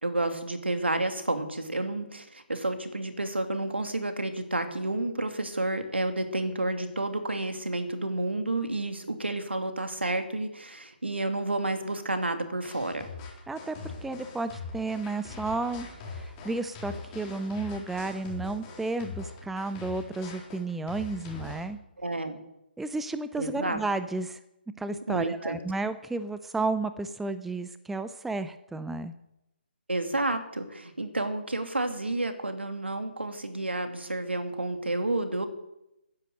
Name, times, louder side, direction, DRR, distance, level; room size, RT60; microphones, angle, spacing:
voice 1, 0.0-13.1 22.0-22.4 23.4-23.8 25.1-25.6 29.9-35.5, right 2 dB, 85° right, 7 dB, 2.6 m, -30 dB
sound 1, 12.6-21.6, left 4 dB, 20° left, 3.9 m, -42 dB
voice 2, 13.5-21.8 22.8-24.4 24.8-29.1, right 3 dB, 5° right, 12 dB, 0.5 m, -32 dB
14.0 x 10.5 x 7.8 m, 0.87 s
figure-of-eight pair, 145°, 6 cm